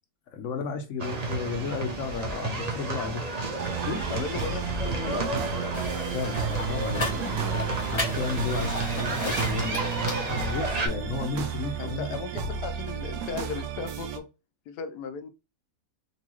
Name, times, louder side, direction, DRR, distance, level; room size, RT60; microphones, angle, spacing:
voice 1, 0.3-3.3 3.7-4.1 6.1-9.8 10.2-12.2, left 5 dB, 60° left, 0.9 m, -33 dB
sound 1, 1.0-10.9, right 3 dB, 55° right, 0.4 m, -32 dB
sound 2, 3.6-14.2, right 6 dB, 75° right, 1.1 m, -33 dB
voice 2, 4.1-5.9 11.8-14.2 14.7-15.3, left 6 dB, 80° left, 1.1 m, -36 dB
sound 3, 5.7-10.9, left 2 dB, 20° left, 0.9 m, -36 dB
4.0 x 2.6 x 3.0 m
omnidirectional pair, 1.7 m